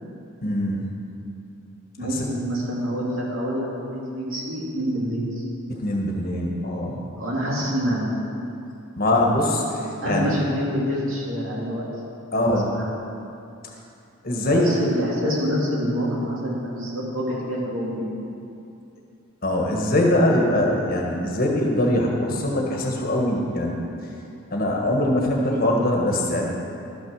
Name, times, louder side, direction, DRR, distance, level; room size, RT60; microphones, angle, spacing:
voice 1, 0.4-0.9 2.1-2.2 5.7-7.1 9.0-9.6 10.0-10.3 12.3-12.7 14.2-14.7 19.4-23.8 24.5-26.5, left 1 dB, 45° left, -1 dB, 1.5 m, -22 dB
voice 2, 2.0-5.4 7.2-8.1 10.0-11.9 12.4-12.9 14.4-18.1, equal, 75° right, -4 dB, 2.4 m, -26 dB
12.5 x 6.2 x 6.4 m, 2.6 s
head